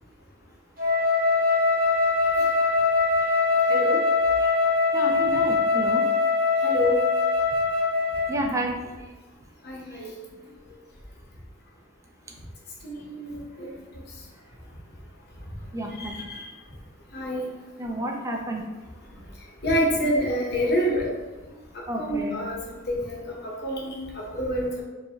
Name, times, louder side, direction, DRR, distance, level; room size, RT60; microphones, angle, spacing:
Wind instrument woodwind instrument, 0.8-8.4, left 3 dB, 45° right, 1.0 m, -22 dB
voice 1, 4.9-6.1 8.3-8.8 15.7-16.2 17.8-18.7 21.9-22.4, right 1 dB, 15° right, 1 dB, 0.4 m, -30 dB
voice 2, 6.6-7.0 9.6-10.1 12.8-13.7 16.0-16.4 17.1-17.5 19.6-21.1 21.7-24.8, equal, 50° left, -3 dB, 0.9 m, -27 dB
4.6 x 2.7 x 2.9 m, 1.2 s
head